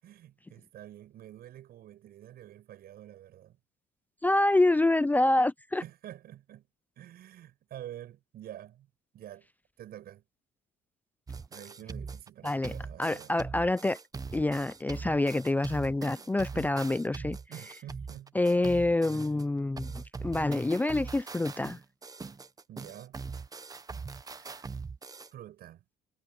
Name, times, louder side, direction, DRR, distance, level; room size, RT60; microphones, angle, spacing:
voice 1, 0.0-3.6 5.8-6.7 7.0-8.9 9.1-9.5 9.8-10.2 11.5-13.3 16.5-16.8 17.5-18.4 19.1-19.3 22.7-23.2 24.4-24.7 25.3-25.8, right 12 dB, 65° right, 7.3 m, -48 dB
voice 2, 4.2-5.8 12.4-12.7 13.0-14.0 14.3-17.4 18.3-21.8, left 2 dB, 10° left, 0.5 m, -27 dB
sound 1, 11.3-19.4 19.8-25.3, right 4 dB, 20° right, 1.1 m, -41 dB
cardioid pair, 110°, 17 cm